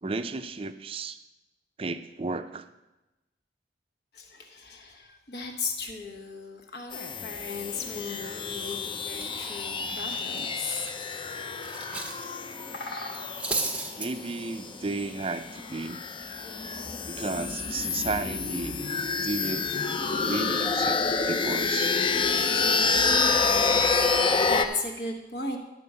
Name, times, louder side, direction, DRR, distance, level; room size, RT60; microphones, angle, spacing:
voice 1, 0.0-1.2 1.8-2.7 14.0-16.0 17.1-18.9 19.2-19.8 20.2-22.0, right 3 dB, 30° right, 10 dB, 0.4 m, -33 dB
voice 2, 4.1-10.9 23.8-25.6, left 4 dB, 65° left, 2 dB, 1.3 m, -36 dB
sound 1, 6.9-24.7, left 4 dB, 30° left, 0.5 m, -28 dB
Cutlery silverware, 8.5-8.8 9.1-12.2 12.5-12.7 13.1-14.1, right 3 dB, 5° right, 0.8 m, -35 dB
Bird vocalization bird call bird song, 10.3-15.3, left 1 dB, 85° left, 2.1 m, -47 dB
11.0 x 4.6 x 6.8 m, 1.0 s
head